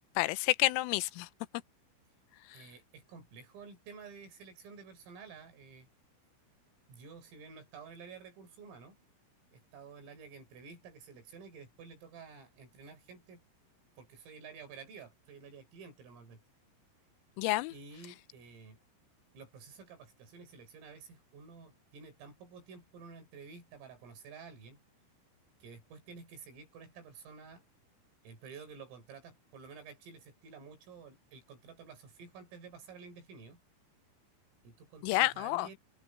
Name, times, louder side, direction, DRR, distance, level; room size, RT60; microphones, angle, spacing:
voice 1, 0.2-1.3 17.4-17.7 35.0-35.7, left 19 dB, 90° left, 3.3 m, -29 dB
voice 2, 2.5-5.9 6.9-9.0 9.5-13.4 14.0-16.4 17.7-18.8 19.3-24.8 25.6-27.6 28.2-33.6 34.6-35.8, right 5 dB, 85° right, 7.9 m, -51 dB
omnidirectional pair, 5.8 m